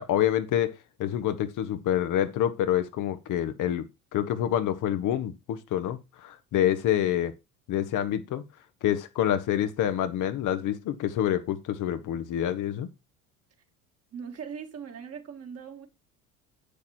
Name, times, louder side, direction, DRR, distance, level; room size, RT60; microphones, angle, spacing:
voice 1, 0.0-3.8 4.1-7.3 7.7-8.4 8.8-12.9, left 11 dB, 50° left, 1.1 m, -27 dB
voice 2, 14.1-15.9, right 7 dB, 35° right, 2.2 m, -40 dB
8.5 x 6.7 x 4.4 m
hypercardioid pair, 70°, 41 cm